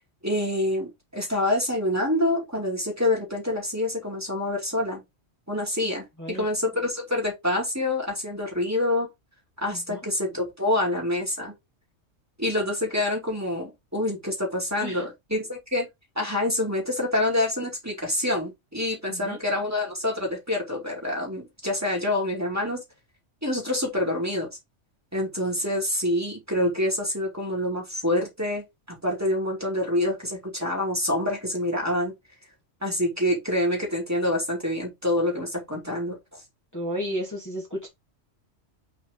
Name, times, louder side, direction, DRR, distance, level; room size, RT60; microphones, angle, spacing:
voice 1, 0.2-5.0 5.5-9.1 9.6-11.5 12.4-15.9 16.2-22.8 23.4-24.6 25.1-32.1 32.8-36.4, left 1 dB, 15° right, 2.5 m, -27 dB
voice 2, 36.7-37.9, equal, 15° left, 1.9 m, -32 dB
6.5 x 3.9 x 3.7 m
omnidirectional pair, 1.2 m